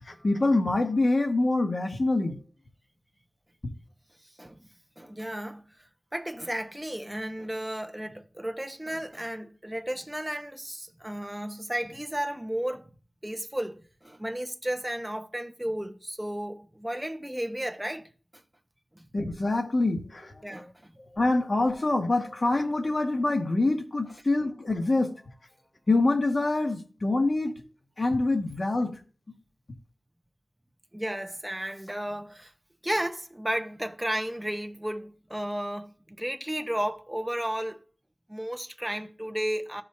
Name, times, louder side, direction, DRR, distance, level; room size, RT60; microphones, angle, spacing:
voice 1, 0.0-2.4 19.1-20.3 21.2-25.1 25.9-27.6 28.0-28.9, left 2 dB, 45° left, 1.8 m, -25 dB
voice 2, 5.0-12.9 13.2-18.1 18.9-19.1 20.4-20.9 30.9-32.5 32.8-37.8 38.3-39.8, right 1 dB, 10° right, 1.0 m, -33 dB
14.5 x 4.9 x 2.8 m
wide cardioid pair, 55°, 0 cm